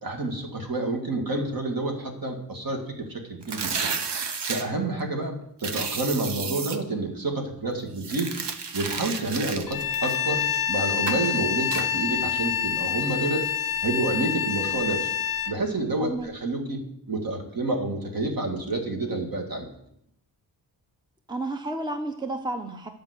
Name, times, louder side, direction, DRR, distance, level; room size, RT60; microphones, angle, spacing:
voice 1, 0.0-3.9 4.5-8.3 8.7-13.5 13.8-15.1 15.5-16.8 17.1-19.7, right 2 dB, 50° right, 2 dB, 2.0 m, -29 dB
sound 1, 3.4-4.6 5.6-6.8 8.0-10.6 11.1-11.3 11.7-11.9, right 5 dB, 70° right, 1.0 m, -32 dB
Bowed string instrument, 9.7-15.6, left 8 dB, 55° left, 0.6 m, -27 dB
voice 2, 21.3-22.9, right 2 dB, 10° right, 6 dB, 0.7 m, -31 dB
10.5 x 5.1 x 8.0 m, 0.74 s
wide cardioid pair, 135°, 43 cm